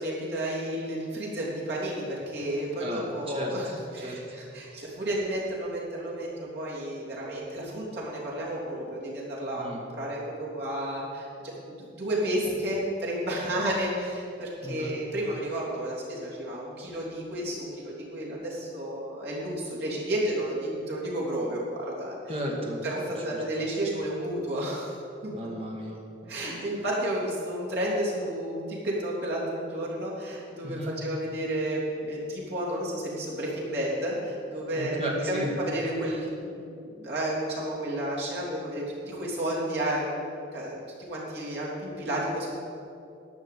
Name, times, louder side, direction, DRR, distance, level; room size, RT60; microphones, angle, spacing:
voice 1, 0.0-22.2 22.8-25.0 25.2-25.3 26.3-35.0 35.3-40.8 41.1-42.6, right 1 dB, 60° right, -6 dB, 3.4 m, -32 dB
voice 2, 2.8-4.2 9.6-9.8 14.6-14.9 22.3-22.8 23.3-23.4 25.3-26.6 30.6-31.0 34.7-35.5, equal, 30° right, -1 dB, 2.0 m, -35 dB
11.5 x 5.8 x 8.6 m, 2.6 s
head